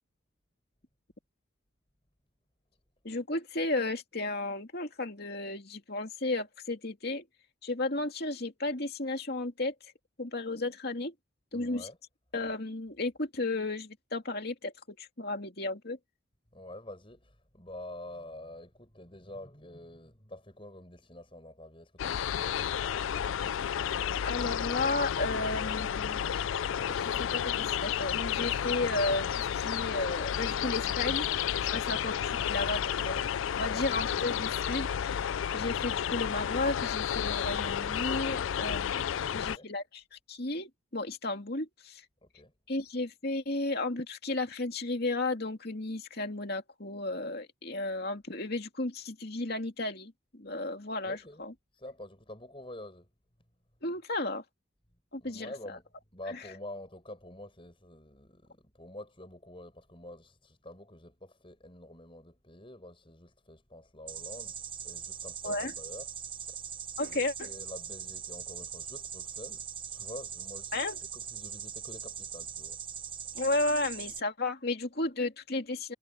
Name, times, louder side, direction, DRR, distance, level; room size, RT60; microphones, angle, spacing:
voice 1, 3.0-7.2 7.6-9.7 10.2-11.1 11.5-11.9 12.3-16.0 24.2-26.6 26.9-31.3 31.6-35.1 35.5-42.0 42.7-51.5 53.8-54.4 55.1-55.8 56.3-56.4 65.4-65.7 67.0-67.5 70.7-71.0 73.3-75.9, left 2 dB, 50° left, 2.6 m, -34 dB
voice 2, 11.5-12.0 16.5-22.8 39.1-39.7 42.2-42.5 51.0-51.4 51.7-53.1 55.2-55.8 56.1-64.6 64.8-66.1 66.3-66.6 67.1-70.8 71.1-73.4, left 1 dB, 25° left, 7.0 m, -47 dB
sound 1, 22.0-39.6, left 9 dB, 70° left, 0.4 m, -31 dB
sound 2, 64.1-74.2, right 8 dB, 25° right, 0.9 m, -41 dB
head